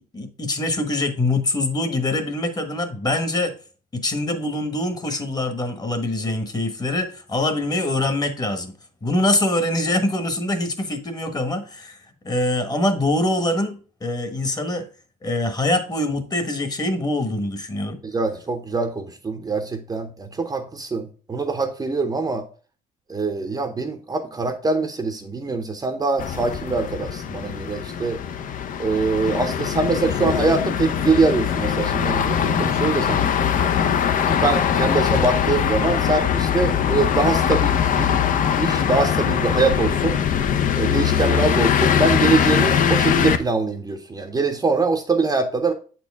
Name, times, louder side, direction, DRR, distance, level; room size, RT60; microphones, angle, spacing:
voice 1, 0.1-3.5 3.9-8.7 9.0-12.0 12.2-14.9 15.2-18.0, left 1 dB, 25° left, 8 dB, 1.2 m, -24 dB
voice 2, 18.0-22.4 23.1-28.2 28.8-33.7 34.3-38.2 38.6-40.2 40.8-45.7, right 3 dB, 20° right, 6 dB, 0.8 m, -23 dB
sound 1, 26.2-43.4, left 8 dB, 50° left, 0.6 m, -21 dB
7.8 x 4.5 x 3.4 m, 0.37 s
cardioid pair, 110°, 17 cm